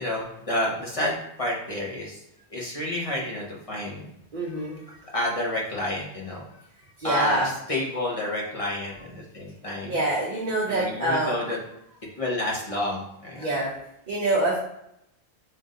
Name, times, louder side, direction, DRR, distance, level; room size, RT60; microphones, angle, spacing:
voice 1, 0.0-2.2 2.5-4.1 4.6-6.6 7.0-10.0 10.7-11.6 12.2-13.5, left 1 dB, 35° left, -3 dB, 0.8 m, -30 dB
voice 2, 4.3-4.8 7.0-7.5 9.8-11.4 13.4-13.7 14.1-14.6, right 1 dB, 45° right, -5 dB, 0.8 m, -25 dB
3.7 x 2.6 x 3.7 m, 0.77 s
omnidirectional pair, 1.2 m